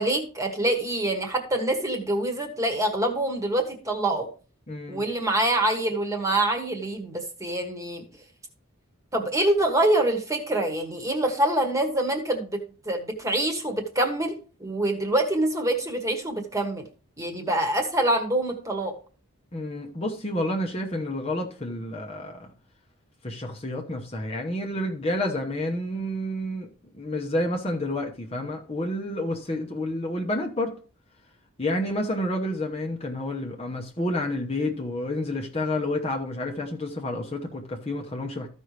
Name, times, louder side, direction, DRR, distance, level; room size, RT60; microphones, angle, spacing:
voice 1, 0.0-4.3 4.9-8.1 9.1-16.8 17.2-18.9, right 1 dB, 15° right, 1.4 m, -25 dB
voice 2, 4.7-5.0 19.5-22.5 23.2-26.7 26.9-30.7 31.6-38.5, left 1 dB, 25° left, 1.0 m, -29 dB
14.0 x 5.4 x 3.3 m
head